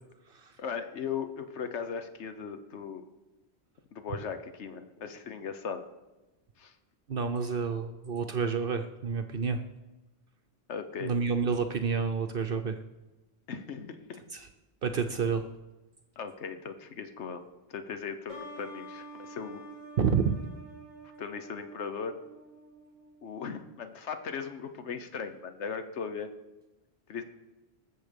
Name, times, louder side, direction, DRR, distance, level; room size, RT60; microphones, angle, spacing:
voice 1, 0.6-3.1 3.9-5.8 6.6-6.7 10.7-11.1 13.5-14.2 16.2-17.4 17.7-19.6 21.2-22.1 23.2-26.3 27.1-27.2, left 6 dB, 90° left, 9 dB, 1.2 m, -38 dB
voice 2, 7.1-9.6 11.0-12.8 14.3-14.5 14.8-15.4 20.0-20.4, right 5 dB, 60° right, 8 dB, 0.8 m, -29 dB
sound 1, 18.3-23.7, right 1 dB, 20° left, 2.6 m, -48 dB
19.5 x 7.1 x 5.2 m, 1.1 s
omnidirectional pair, 1.1 m